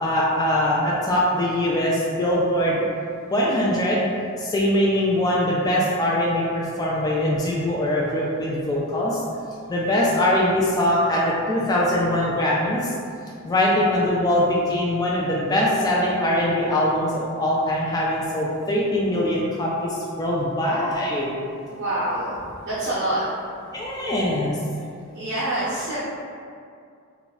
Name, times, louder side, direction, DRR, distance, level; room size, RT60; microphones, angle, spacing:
voice 1, 0.0-2.8 3.3-4.0 4.4-9.2 9.7-12.8 13.4-19.9 20.2-21.3 23.7-24.6, left 1 dB, 20° left, -5 dB, 0.3 m, -22 dB
voice 2, 21.7-23.3 24.8-24.9 25.1-26.0, right 1 dB, 60° right, -10 dB, 0.7 m, -26 dB
2.3 x 2.2 x 3.9 m, 2.3 s
head